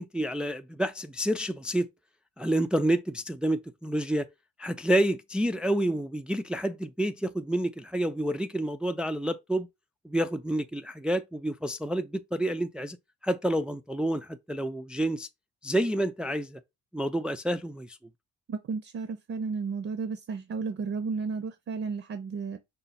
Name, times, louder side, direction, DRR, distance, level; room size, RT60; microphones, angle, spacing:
voice 1, 0.0-1.9 2.4-4.3 4.6-9.7 10.0-13.0 13.2-15.3 15.6-16.6 16.9-18.0, right 1 dB, 5° right, 0.4 m, -29 dB
voice 2, 18.5-22.6, right 5 dB, 45° right, 0.7 m, -33 dB
5.3 x 2.2 x 4.1 m
cardioid pair, 90°, 30 cm